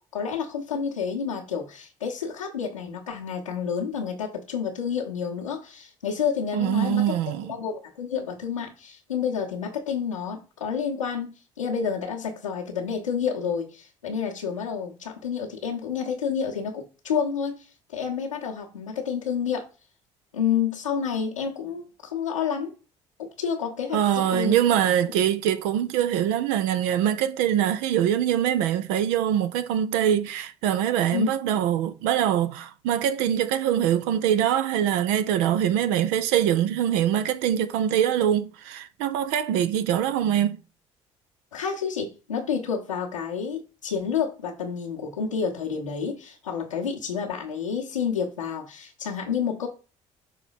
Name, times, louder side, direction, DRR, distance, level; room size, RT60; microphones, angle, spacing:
voice 1, 0.1-17.6 17.9-19.7 20.3-22.7 23.2-24.6 31.1-31.3 41.5-49.7, left 7 dB, 85° left, 1.1 m, -29 dB
voice 2, 6.5-7.6 23.9-40.6, right 10 dB, 65° right, 0.5 m, -23 dB
6.3 x 3.8 x 4.2 m
figure-of-eight pair, 50°, 16 cm